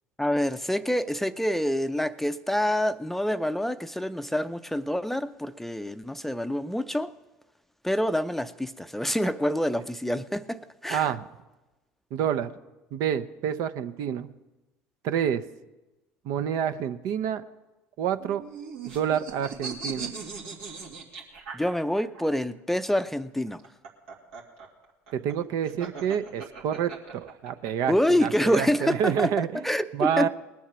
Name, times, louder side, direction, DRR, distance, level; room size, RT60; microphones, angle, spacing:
voice 1, 0.2-7.1 7.8-11.1 21.5-23.6 27.9-30.3, left 1 dB, 5° left, 11 dB, 0.5 m, -27 dB
voice 2, 10.9-11.2 12.1-12.5 12.9-14.3 15.0-15.4 16.2-17.4 18.0-18.4 18.9-20.1 25.1-29.5 29.9-30.3, right 9 dB, 65° right, 11 dB, 0.7 m, -28 dB
sound 1, 18.2-22.2 23.5-27.7, right 5 dB, 85° right, 2.3 m, -39 dB
20.0 x 7.2 x 6.1 m, 1.1 s
hypercardioid pair, 75°, 6 cm